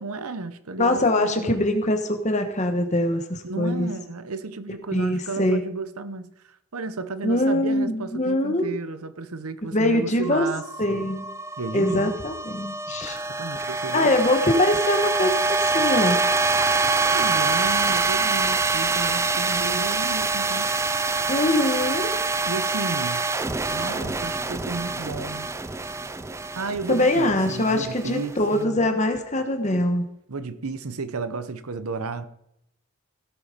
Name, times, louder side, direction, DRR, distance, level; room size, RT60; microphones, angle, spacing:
voice 1, 0.0-1.6 3.4-11.1 11.6-12.1 13.4-14.1 17.1-20.7 22.5-23.3 23.7-25.5 26.5-28.9 30.3-32.3, right 3 dB, 85° right, 0.9 m, -33 dB
voice 2, 0.8-3.9 4.9-5.6 7.2-8.7 9.7-10.4 10.8-11.2 11.7-13.2 13.9-15.4 15.7-16.2 21.3-22.1 26.9-30.0, left 1 dB, 35° left, 1.2 m, -23 dB
sound 1, 10.2-28.5, right 3 dB, 15° right, 0.4 m, -25 dB
16.5 x 7.2 x 5.2 m
head